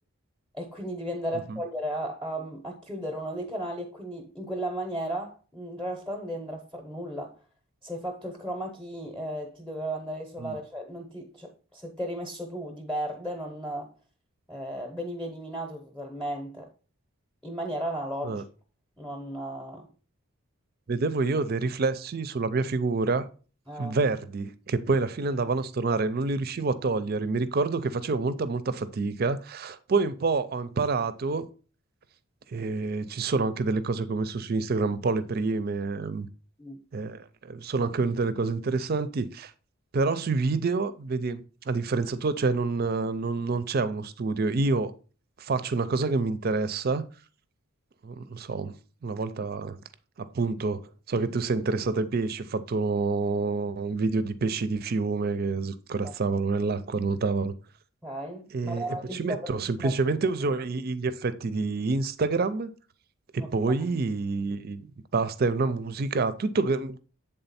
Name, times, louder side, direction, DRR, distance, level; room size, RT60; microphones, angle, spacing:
voice 1, 0.5-7.3 7.8-13.9 14.5-16.7 17.4-18.4 19.0-19.9 23.7-24.0 36.6-36.8 56.0-56.1 58.0-59.9 63.4-63.5, right 1 dB, ahead, 0.8 m, -35 dB
voice 2, 20.9-23.2 23.8-31.5 32.5-36.3 36.9-39.5 39.9-44.9 45.4-47.0 48.0-48.7 49.0-49.8 50.2-50.8 51.1-57.5 58.5-62.7 63.3-64.9 65.1-67.0, right 3 dB, 45° right, 0.4 m, -27 dB
7.9 x 3.6 x 4.2 m
head